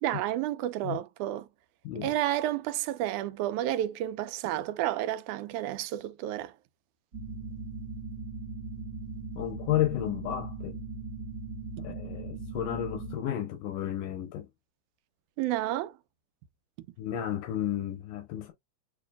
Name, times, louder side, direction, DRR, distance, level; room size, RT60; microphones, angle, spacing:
voice 1, 0.0-1.5 2.0-6.5 15.4-16.0, right 13 dB, 80° right, 2.0 m, -31 dB
sound 1, 7.1-13.2, right 3 dB, 45° right, 1.4 m, -39 dB
voice 2, 9.4-10.8 11.8-14.5 17.0-18.5, left 12 dB, 85° left, 2.5 m, -32 dB
6.7 x 3.0 x 2.3 m
omnidirectional pair, 3.7 m